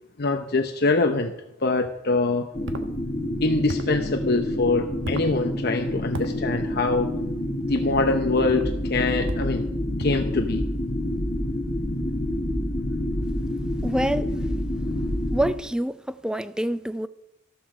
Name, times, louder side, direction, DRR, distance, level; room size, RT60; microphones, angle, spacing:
voice 1, 0.2-1.3 1.6-2.5 3.4-7.1 7.7-9.7 10.0-10.6, left 3 dB, 50° left, 0.9 m, -24 dB
sound 1, 2.5-15.5, left 1 dB, 25° left, 1.7 m, -28 dB
sound 2, 2.7-2.9 3.7-4.0 5.0-5.3 6.1-6.4 7.6-7.9 8.5-8.7 9.3-9.6 10.0-10.3, right 1 dB, 65° right, 1.2 m, -35 dB
voice 2, 13.8-14.3 15.3-17.1, right 1 dB, 5° right, 0.4 m, -26 dB
14.0 x 12.5 x 4.9 m
head